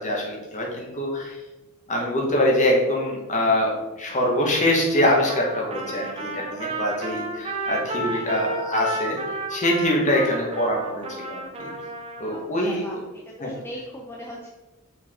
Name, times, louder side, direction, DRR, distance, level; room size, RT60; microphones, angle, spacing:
voice 1, 0.0-1.4 1.9-9.2 9.5-11.7 12.2-12.8 13.4-13.5, left 1 dB, 35° left, -1 dB, 1.4 m, -24 dB
Trumpet, 5.3-12.4, right 2 dB, 30° right, 0.8 m, -32 dB
voice 2, 8.0-8.3 12.3-13.0 13.2-14.5, equal, 10° left, -3 dB, 0.6 m, -39 dB
5.8 x 4.6 x 3.7 m, 1.1 s
head